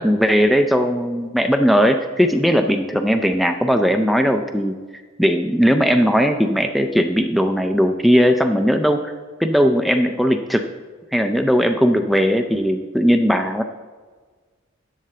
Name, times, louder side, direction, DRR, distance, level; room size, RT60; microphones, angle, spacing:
voice 1, 0.0-4.8 5.2-9.1 9.4-10.6 11.1-13.6, equal, ahead, 5 dB, 0.3 m, -18 dB
10.5 x 3.8 x 6.6 m, 1.4 s
head